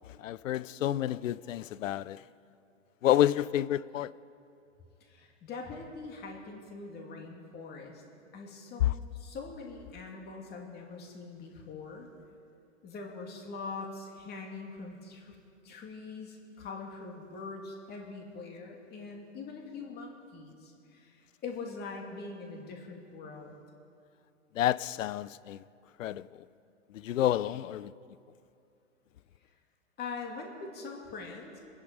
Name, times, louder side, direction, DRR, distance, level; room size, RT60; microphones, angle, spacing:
voice 1, 0.0-2.2 3.0-4.1 8.8-8.9 24.5-25.6 26.0-26.3 26.9-27.9, left 12 dB, 80° left, 0.6 m, -29 dB
voice 2, 5.0-8.0 8.3-12.1 12.8-15.4 15.6-23.5 30.0-31.6, left 4 dB, 25° left, 2.6 m, -43 dB
26.0 x 10.5 x 5.2 m
hypercardioid pair, 135°, 38 cm